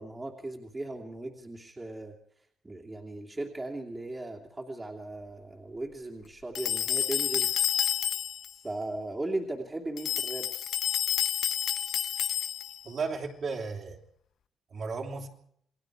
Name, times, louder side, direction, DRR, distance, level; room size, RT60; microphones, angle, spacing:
voice 1, 0.0-2.1 2.6-7.5 8.6-10.5, right 2 dB, 15° right, 0 dB, 2.8 m, -37 dB
sound 1, 6.5-8.5 10.0-12.8, left 9 dB, 60° left, 0.9 m, -29 dB
voice 2, 12.8-14.0 14.7-15.3, right 4 dB, 40° right, 1 dB, 3.5 m, -34 dB
28.0 x 21.5 x 4.9 m, 0.68 s
cardioid pair, 155°, 0 cm